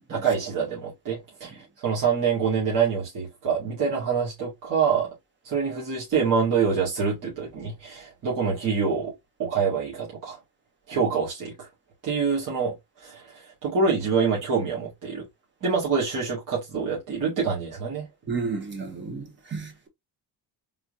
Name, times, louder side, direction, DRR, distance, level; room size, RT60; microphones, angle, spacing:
voice 1, 0.1-5.1 5.4-9.1 9.4-10.4 10.9-11.7 12.0-15.2 15.6-18.1, right 5 dB, 50° right, 2.3 m, -26 dB
voice 2, 18.3-19.9, right 4 dB, 25° right, 1.0 m, -32 dB
4.2 x 3.7 x 2.6 m
cardioid pair, 170°, 41 cm